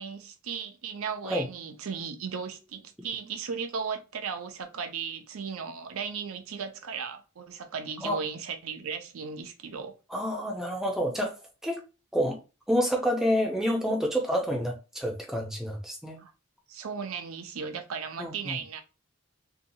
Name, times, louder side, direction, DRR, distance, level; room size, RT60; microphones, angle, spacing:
voice 1, 0.0-10.0 16.2-16.3 16.7-18.8, right 6 dB, 75° right, 0.5 m, -36 dB
voice 2, 10.1-11.4 11.6-11.8 12.1-12.4 12.7-16.2 18.2-18.6, equal, ahead, 0.5 m, -28 dB
2.7 x 2.3 x 2.6 m
head